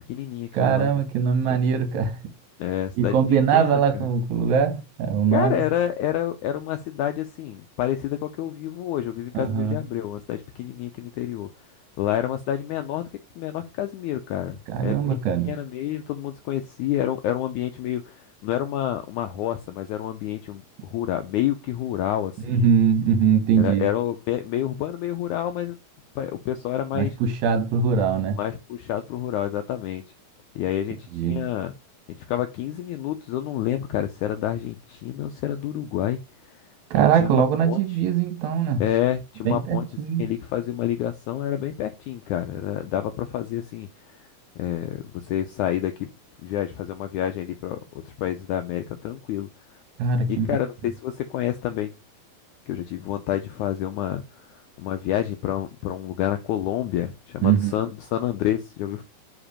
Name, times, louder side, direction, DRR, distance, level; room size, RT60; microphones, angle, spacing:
voice 1, 0.0-1.0 1.5-1.9 2.6-3.2 3.5-4.1 5.3-11.5 12.0-13.1 13.4-15.2 15.5-22.7 23.5-25.8 26.2-27.2 28.4-30.0 30.6-31.7 32.2-36.2 36.5-36.6 37.1-37.8 38.8-39.9 40.2-44.2 44.6-46.1 46.4-49.5 50.3-51.9 52.7-59.0, left 11 dB, 85° left, 1.7 m, -28 dB
voice 2, 0.5-2.2 3.0-5.6 9.3-9.8 14.7-15.6 22.4-23.9 26.9-28.4 31.1-31.5 36.9-38.8 39.4-40.3 50.0-50.5 57.4-57.7, right 7 dB, 60° right, 2.4 m, -22 dB
5.3 x 5.0 x 4.9 m
omnidirectional pair, 4.1 m